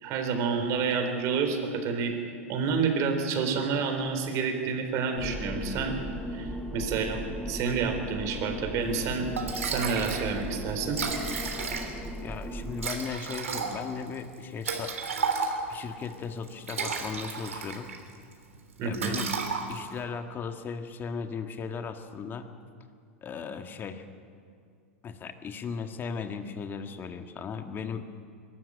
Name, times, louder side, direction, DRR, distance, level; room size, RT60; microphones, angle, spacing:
voice 1, 0.0-2.1 2.5-6.0 6.3-9.3 9.6-11.0 18.8-19.2, right 5 dB, 45° right, 5 dB, 3.8 m, -29 dB
sound 1, 5.2-12.9, equal, 5° left, 2.2 m, -37 dB
Liquid, 9.0-9.1 9.4-10.3 10.6-10.7 10.8-12.1 12.8-15.8 16.5-18.0 18.3-18.6 18.9-20.0, right 5 dB, 85° right, 3.2 m, -32 dB
voice 2, 12.2-15.0 15.7-17.9 18.8-19.3 19.7-22.5 23.2-24.0 25.0-28.1, left 6 dB, 30° left, 7 dB, 1.8 m, -37 dB
23.0 x 13.0 x 8.8 m, 2.3 s
hypercardioid pair, 105°, 7 cm